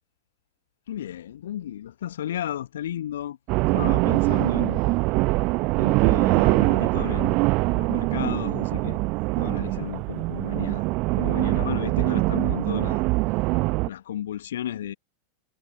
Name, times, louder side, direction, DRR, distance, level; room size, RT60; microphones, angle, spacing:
voice 1, 0.9-3.4 3.7-4.8 5.7-7.4 7.7-10.9 11.1-13.0 13.9-14.9, left 11 dB, 60° left, 1.2 m, -33 dB
sound 1, 3.5-13.9, right 25 dB, 40° right, 1.0 m, -23 dB
figure-of-eight pair, 90°, 0 cm